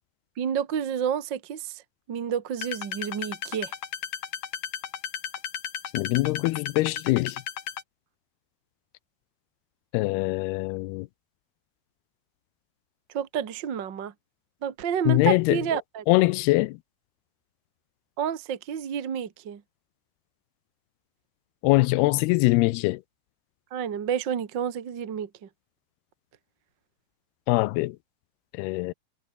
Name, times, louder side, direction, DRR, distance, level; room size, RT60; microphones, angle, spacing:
voice 1, 0.4-1.8 2.1-3.7 13.1-14.1 14.6-16.0 18.2-19.6 23.7-25.5, right 8 dB, 45° right, 1.6 m, -30 dB
sound 1, 2.6-7.8, left 9 dB, 55° left, 3.3 m, -35 dB
voice 2, 5.9-7.4 9.9-11.1 15.1-15.6 16.1-16.8 21.6-23.0 27.5-28.0 28.6-28.9, left 21 dB, 80° left, 2.5 m, -23 dB
omnidirectional pair, 4.6 m